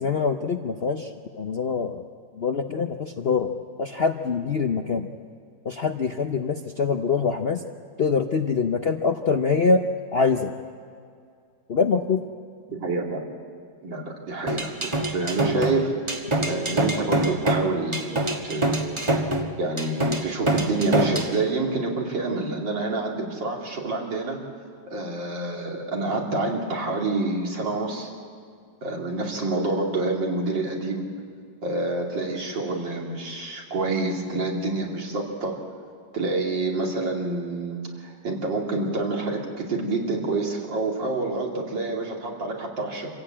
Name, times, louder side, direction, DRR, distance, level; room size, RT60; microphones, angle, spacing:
voice 1, 0.0-2.1 2.4-3.5 3.8-5.1 5.6-7.6 8.0-9.8 10.1-10.5 11.7-12.2, left 5 dB, 55° left, 6 dB, 0.7 m, -24 dB
voice 2, 12.7-13.2 13.8-15.9 16.5-19.1 19.6-24.4 24.9-28.1 28.8-31.1 31.6-35.6 36.1-43.1, right 3 dB, 80° right, -1 dB, 3.4 m, -27 dB
sound 1, 14.5-21.4, right 1 dB, 20° right, 1.3 m, -25 dB
26.0 x 15.5 x 8.7 m, 2.3 s
omnidirectional pair, 2.0 m